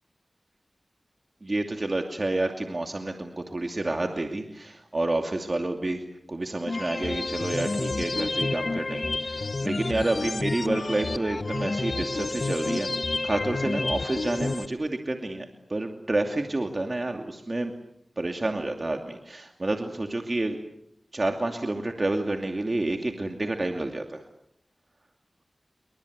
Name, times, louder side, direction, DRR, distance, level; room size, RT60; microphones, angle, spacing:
voice 1, 1.4-12.9 13.2-17.7 18.2-20.6 21.1-24.2, right 2 dB, 40° right, 4 dB, 2.6 m, -29 dB
sound 1, 6.7-14.7, left 3 dB, 60° left, 1.2 m, -30 dB
29.0 x 23.5 x 8.1 m, 0.74 s
wide cardioid pair, 60°, 0 cm